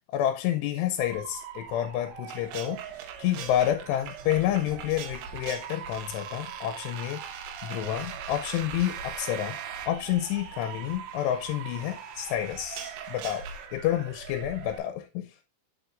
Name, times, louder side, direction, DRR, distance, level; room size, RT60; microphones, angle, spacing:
voice 1, 0.1-2.8 3.2-9.6 9.8-13.5 13.7-15.3, left 12 dB, 90° left, 2.8 m, -29 dB
Motor vehicle (road) / Siren, 1.0-14.8, right 5 dB, 65° right, 3.4 m, -43 dB
sound 1, 2.3-13.7, right 9 dB, 85° right, 3.1 m, -42 dB
9.2 x 7.0 x 2.5 m
omnidirectional pair, 4.8 m